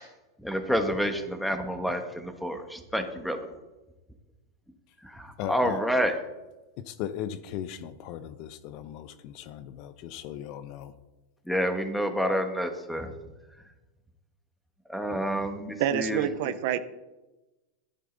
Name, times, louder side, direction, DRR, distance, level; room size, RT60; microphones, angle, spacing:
voice 1, 0.4-3.4 5.2-6.2 11.5-13.1 14.9-16.3, equal, ahead, 6 dB, 1.4 m, -28 dB
voice 2, 5.4-5.8 6.9-10.9, left 10 dB, 50° left, 13 dB, 0.7 m, -37 dB
voice 3, 15.8-16.8, right 10 dB, 60° right, 13 dB, 0.7 m, -27 dB
12.0 x 10.0 x 4.0 m, 1.1 s
hypercardioid pair, 125°, 0 cm